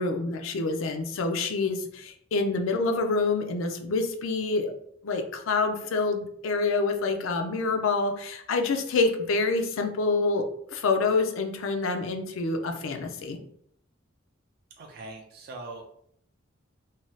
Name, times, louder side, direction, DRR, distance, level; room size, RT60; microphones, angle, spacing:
voice 1, 0.0-4.7 5.0-13.4, left 3 dB, 90° left, 5 dB, 0.4 m, -27 dB
voice 2, 14.8-15.8, right 2 dB, 50° right, 1 dB, 0.4 m, -41 dB
2.7 x 2.2 x 3.1 m, 0.68 s
head